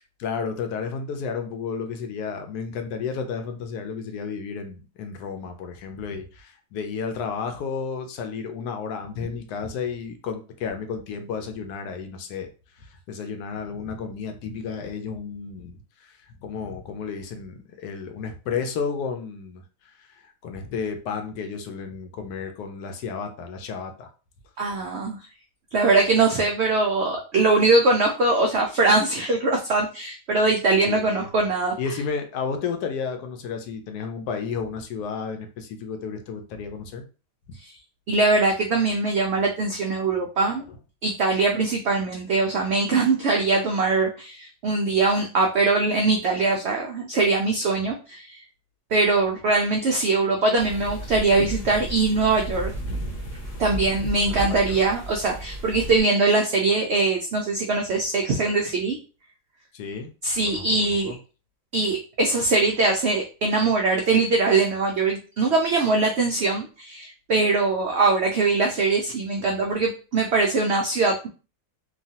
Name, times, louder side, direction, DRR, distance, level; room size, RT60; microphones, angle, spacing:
voice 1, 0.2-12.5 12.8-24.1 30.9-31.3 31.8-37.0 37.5-37.6 54.5-54.9 59.7-60.1 60.5-61.2, left 5 dB, 80° left, 6 dB, 1.1 m, -32 dB
voice 2, 24.6-25.2 25.7-31.8 37.6-37.7 38.1-40.7 41.0-48.4 48.9-52.7 53.6-59.0 60.2-61.1 61.7-71.3, right 3 dB, 80° right, 1 dB, 0.5 m, -22 dB
sound 1, 50.6-56.0, right 1 dB, 50° left, 0.8 m, -33 dB
3.0 x 2.3 x 2.7 m, 0.35 s
omnidirectional pair, 1.7 m